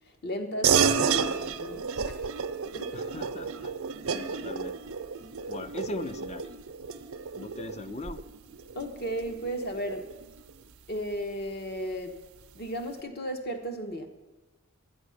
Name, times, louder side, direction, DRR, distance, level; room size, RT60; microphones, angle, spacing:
voice 1, 0.2-2.2 2.7-3.1 8.7-10.0 10.9-12.1 12.5-14.1, equal, 50° left, 6 dB, 1.2 m, -35 dB
sound 1, 0.6-10.5, right 6 dB, 85° right, 0.6 m, -31 dB
voice 2, 2.9-3.7 4.1-4.8 5.5-6.5 7.4-8.2, left 2 dB, 30° left, 12 dB, 0.5 m, -39 dB
11.5 x 9.3 x 6.4 m, 1.2 s
head